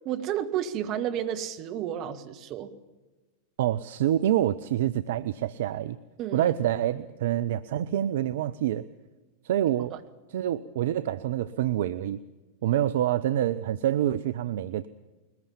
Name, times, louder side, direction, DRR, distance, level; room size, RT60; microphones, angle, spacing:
voice 1, 0.0-2.7 6.2-6.5 9.9-10.0, right 10 dB, 35° right, 7 dB, 1.7 m, -31 dB
voice 2, 3.6-6.0 6.3-8.8 9.4-9.9 10.3-12.2 12.6-14.9, right 12 dB, 55° right, 12 dB, 0.6 m, -26 dB
22.0 x 20.0 x 7.2 m, 1.2 s
figure-of-eight pair, 90°, 0 cm